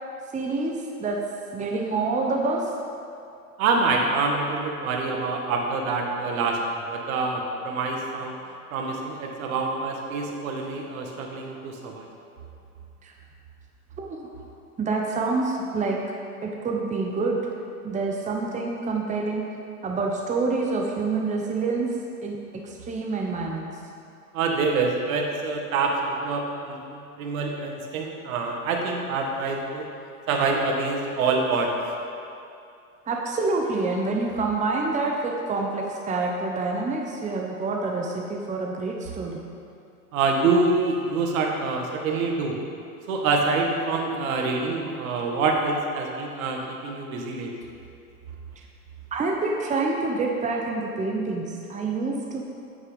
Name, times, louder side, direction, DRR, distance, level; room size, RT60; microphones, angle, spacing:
voice 1, 0.3-1.2 1.5-2.7 13.0-13.1 14.0-14.2 14.8-16.0 16.4-17.5 17.8-19.4 19.8-21.9 22.2-22.4 22.6-23.7 33.1-39.4 49.1-52.5, right 3 dB, 15° right, 0 dB, 1.1 m, -27 dB
voice 2, 3.6-6.6 6.9-8.4 8.7-12.1 24.3-29.9 30.3-31.7 40.1-42.6 43.1-47.6, right 3 dB, 60° right, 1 dB, 2.0 m, -26 dB
9.5 x 9.0 x 5.3 m, 2.5 s
hypercardioid pair, 100°, 46 cm